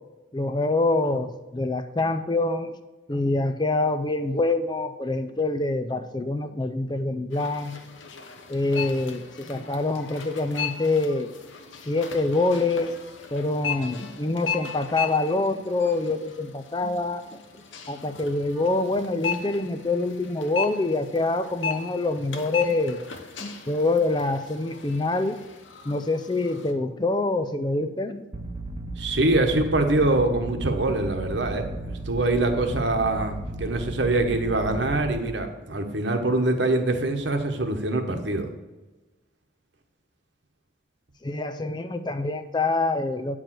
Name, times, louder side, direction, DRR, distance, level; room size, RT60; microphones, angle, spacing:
voice 1, 0.3-2.8 3.1-7.8 8.5-11.3 11.8-12.9 13.3-23.0 23.4-25.4 25.8-28.2 41.2-43.4, left 2 dB, 25° left, 9 dB, 0.4 m, -26 dB
sound 1, 7.3-26.7, left 6 dB, 85° left, 1.0 m, -37 dB
sound 2, 28.3-35.2, right 1 dB, 20° right, 0.7 m, -35 dB
voice 2, 29.0-38.5, right 2 dB, 70° right, 5 dB, 1.2 m, -24 dB
9.2 x 4.9 x 7.5 m, 1.2 s
head